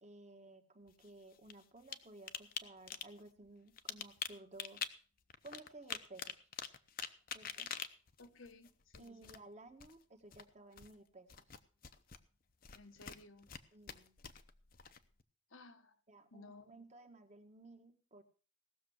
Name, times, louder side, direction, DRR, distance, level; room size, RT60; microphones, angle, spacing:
voice 1, 0.0-4.8 5.4-6.5 7.3-7.7 9.0-11.4 13.7-14.2 16.1-18.2, right 2 dB, 35° right, 6 dB, 1.5 m, -56 dB
sound 1, 0.9-2.0 2.3-2.6 2.9-3.2 3.7-4.9 5.3-9.5 9.8-10.0 10.3-10.9 11.3-12.2 12.6-13.6 13.9-15.2, left 8 dB, 45° left, 0.8 m, -45 dB
voice 2, 8.2-9.3 12.7-13.5 15.5-16.0 16.3-16.8, left 2 dB, 80° left, 8 dB, 1.3 m, -57 dB
17.5 x 6.8 x 6.3 m, 0.40 s
head